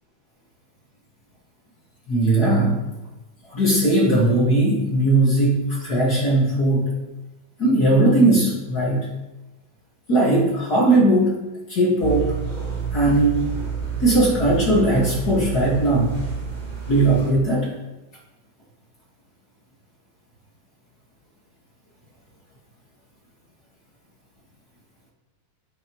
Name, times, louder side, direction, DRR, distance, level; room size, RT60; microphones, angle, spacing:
voice 1, 2.1-2.8 3.5-6.9 7.6-9.1 10.1-11.3 11.7-12.3 12.9-13.4 14.0-16.2 16.9-17.7, right 2 dB, 40° left, -5 dB, 1.4 m, -18 dB
sound 1, 12.0-17.3, right 6 dB, 70° right, 5.3 m, -29 dB
9.5 x 9.1 x 3.1 m, 1.1 s
omnidirectional pair, 4.3 m